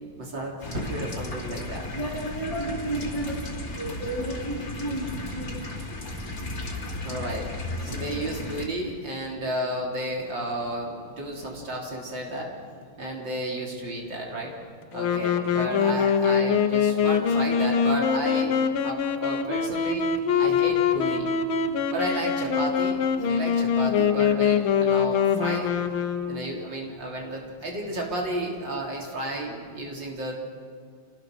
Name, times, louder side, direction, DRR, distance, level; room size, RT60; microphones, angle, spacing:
voice 1, 0.1-1.9 5.1-5.2 7.0-12.5 13.0-14.5 14.9-20.1 20.4-21.3 21.9-25.8 26.2-30.3, right 1 dB, 65° right, -1 dB, 4.0 m, -32 dB
sound 1, 0.6-8.7, left 2 dB, 45° left, 3.2 m, -35 dB
voice 2, 1.9-5.6 15.2-15.7, right 1 dB, 15° left, -3 dB, 4.1 m, -33 dB
Wind instrument woodwind instrument, 14.9-26.7, left 7 dB, 85° left, 1.9 m, -24 dB
27.0 x 19.5 x 6.1 m, 2.2 s
omnidirectional pair, 2.2 m